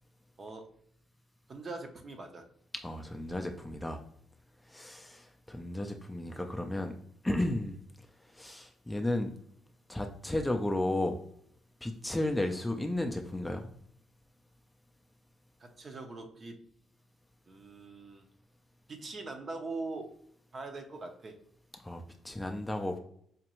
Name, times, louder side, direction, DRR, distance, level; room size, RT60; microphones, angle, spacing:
voice 1, 1.5-2.4 15.6-16.6 17.5-18.3 18.9-20.1 20.5-21.4, right 3 dB, 40° right, 5 dB, 0.7 m, -42 dB
voice 2, 2.8-4.0 4.7-7.0 7.2-7.8 8.3-9.3 9.9-11.2 11.8-13.7 21.8-23.0, left 1 dB, 10° left, 4 dB, 0.4 m, -33 dB
5.0 x 2.3 x 2.9 m, 0.67 s
cardioid pair, 90°, 0 cm